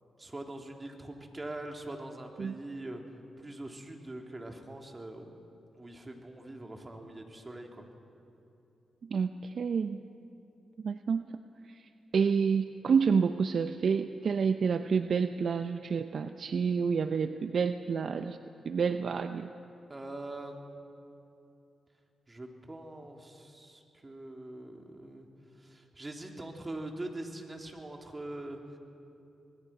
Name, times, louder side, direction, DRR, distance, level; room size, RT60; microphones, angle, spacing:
voice 1, 0.2-3.0 3.4-5.3 5.7-7.9 19.9-20.5 22.3-25.3 25.6-28.8, right 1 dB, 25° right, 2 dB, 3.6 m, -43 dB
voice 2, 9.0-10.0 10.8-11.3 11.7-18.4 18.6-19.5, right 6 dB, 60° right, 9 dB, 0.7 m, -29 dB
26.0 x 20.0 x 6.0 m, 2.8 s
hypercardioid pair, 40°, 0 cm